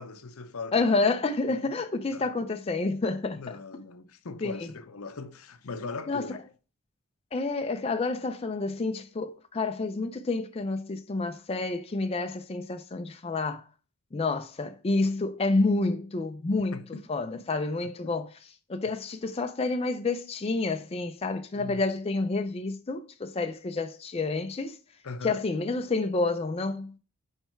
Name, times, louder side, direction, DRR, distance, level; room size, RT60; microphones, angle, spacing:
voice 1, 0.0-1.1 1.7-1.8 2.1-2.3 3.3-6.4 16.7-17.1 17.3-17.5 17.8-18.1 21.5-21.8 25.0-25.5, left 4 dB, 70° left, 0.7 m, -40 dB
voice 2, 0.7-3.4 4.4-4.5 6.1-6.3 7.3-13.7 14.1-16.8 17.1-18.3 18.7-24.8 25.2-26.9, left 3 dB, 25° left, 0.4 m, -29 dB
9.0 x 3.3 x 4.5 m
head